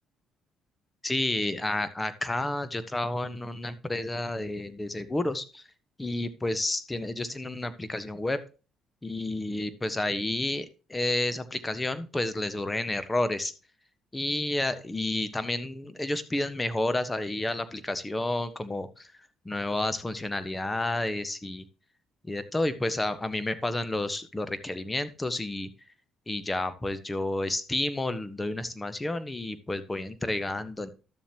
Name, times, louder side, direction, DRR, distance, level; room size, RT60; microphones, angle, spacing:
voice 1, 1.0-5.6 6.0-8.4 9.0-13.5 14.1-19.1 19.4-21.6 22.2-25.7 26.3-30.9, left 2 dB, 20° left, 12 dB, 1.3 m, -30 dB
12.5 x 7.2 x 3.0 m, 0.34 s
supercardioid pair, 60°, 0 cm